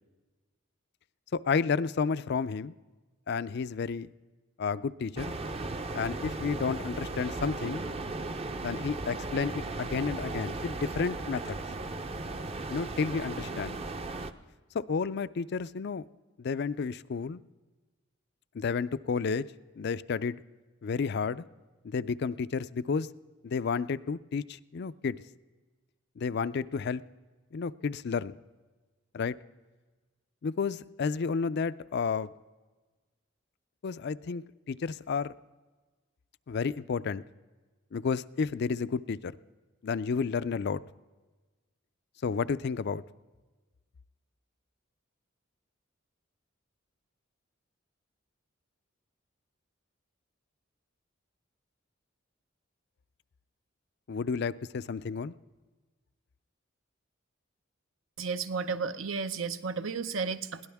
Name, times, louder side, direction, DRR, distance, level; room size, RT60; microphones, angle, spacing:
voice 1, 1.3-2.7 3.3-4.1 4.6-5.3 5.9-7.8 8.6-11.6 12.7-13.8 14.7-16.0 16.4-17.4 18.5-19.5 19.8-20.4 20.8-21.4 21.8-23.1 23.4-25.2 26.2-27.0 27.5-28.4 29.1-29.4 30.4-32.3 33.8-35.3 36.5-37.2 37.9-39.4 39.8-40.8 42.2-43.0 54.1-55.3, left 5 dB, 55° left, 15 dB, 0.4 m, -31 dB
sound 1, 5.2-14.3, right 2 dB, 30° right, 0.6 m, -36 dB
voice 2, 58.2-60.7, right 5 dB, 75° right, 11 dB, 0.8 m, -33 dB
22.0 x 17.5 x 3.5 m, 1.3 s
head